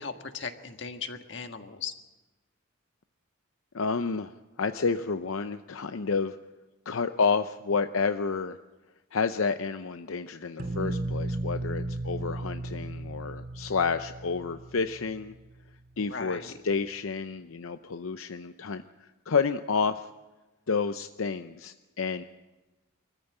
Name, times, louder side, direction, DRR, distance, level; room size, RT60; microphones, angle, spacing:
voice 1, 0.0-1.9 16.0-16.6, left 5 dB, 60° left, 7 dB, 1.6 m, -38 dB
voice 2, 3.7-6.4 6.9-8.6 9.1-15.3 16.0-20.1 20.7-22.2, left 5 dB, 85° left, 10 dB, 0.7 m, -30 dB
sound 1, 10.6-15.5, right 2 dB, 45° right, 2.5 m, -35 dB
25.0 x 14.5 x 9.0 m, 1.2 s
head